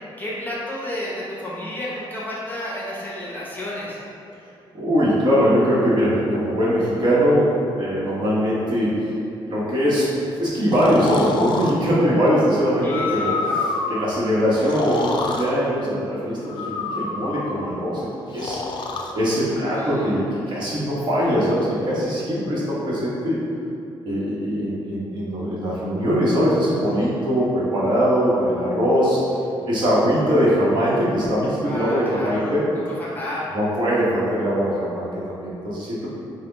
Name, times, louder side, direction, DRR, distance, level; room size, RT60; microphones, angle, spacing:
voice 1, 0.2-4.0 12.8-13.7 19.5-20.6 27.0-27.1 31.6-32.5 33.0-33.5, left 1 dB, 20° left, -7 dB, 0.7 m, -32 dB
voice 2, 4.7-9.0 9.5-10.1 10.4-13.3 13.9-18.1 18.3-18.6 19.1-23.4 24.0-29.2 29.6-32.6 33.5-36.1, equal, 50° right, -8 dB, 1.1 m, -21 dB
Breathing, 10.7-11.7 12.8-14.0 14.6-15.5 16.5-17.7 18.3-19.1, left 4 dB, 55° left, 0.3 m, -27 dB
4.1 x 2.2 x 3.9 m, 2.6 s
wide cardioid pair, 140°, 10 cm